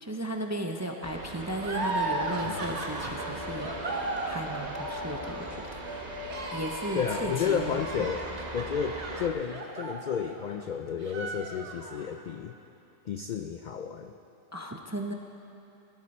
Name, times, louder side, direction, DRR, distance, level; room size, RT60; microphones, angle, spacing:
voice 1, 0.0-5.6 6.5-7.7 8.0-8.1 14.5-15.1, right 1 dB, 20° right, 3 dB, 0.4 m, -35 dB
sound 1, 1.0-9.3, right 2 dB, 35° right, 1.1 m, -40 dB
sound 2, 1.6-10.7 11.0-12.1, right 3 dB, 65° right, 1.6 m, -36 dB
sound 3, 1.8-8.4, left 4 dB, 40° left, 2.5 m, -42 dB
voice 2, 6.9-8.3 8.5-12.5 13.1-14.1, left 7 dB, 70° left, 6 dB, 0.4 m, -32 dB
17.5 x 12.5 x 4.3 m, 2.9 s
omnidirectional pair, 1.3 m